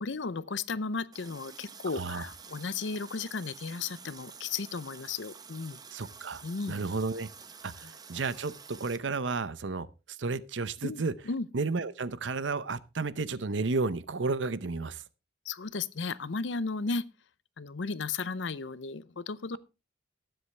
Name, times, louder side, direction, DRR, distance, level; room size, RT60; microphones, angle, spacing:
voice 1, 0.0-5.8 6.4-6.8 7.8-7.9 10.8-11.5 15.4-17.0 17.6-19.6, left 4 dB, 80° left, 0.7 m, -35 dB
Water tap faucet, 1.1-9.0, right 6 dB, 20° right, 0.9 m, -49 dB
voice 2, 1.9-2.3 5.9-6.4 6.7-7.3 7.6-9.9 10.2-11.1 11.5-15.0, right 4 dB, 90° right, 0.8 m, -32 dB
19.0 x 8.0 x 3.3 m
head